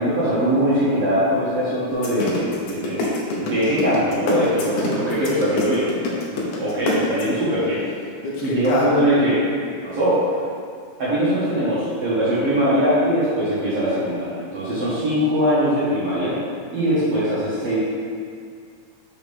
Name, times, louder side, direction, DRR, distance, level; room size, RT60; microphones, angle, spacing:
voice 1, 0.0-3.1 3.4-5.9 6.3-7.8 8.4-9.4 9.8-10.2 11.0-16.3 16.7-17.8, equal, 60° right, -12 dB, 1.5 m, -21 dB
sound 1, 1.9-7.4 8.2-8.9, left 3 dB, 85° left, 1.7 m, -25 dB
6.9 x 5.5 x 3.6 m, 2.2 s
omnidirectional pair, 4.7 m